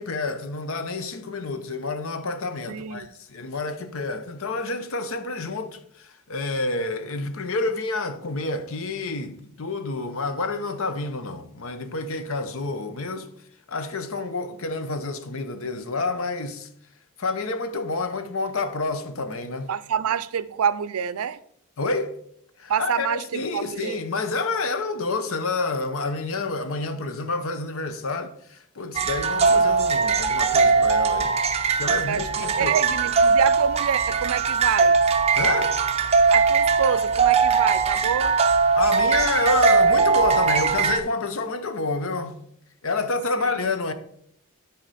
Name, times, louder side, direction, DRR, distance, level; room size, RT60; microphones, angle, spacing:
voice 1, 0.0-13.3 13.7-16.7 17.2-19.7 21.8-22.1 22.6-31.3 31.8-32.8 35.4-35.8 38.8-42.4 42.8-43.9, left 3 dB, 70° left, 0.8 m, -28 dB
voice 2, 2.7-3.1 19.7-21.4 22.7-24.0 31.9-35.0 36.3-38.4 43.4-43.7, right 7 dB, 85° right, 0.4 m, -27 dB
sound 1, 28.9-41.0, right 5 dB, 30° right, 0.5 m, -20 dB
12.5 x 4.3 x 4.1 m
head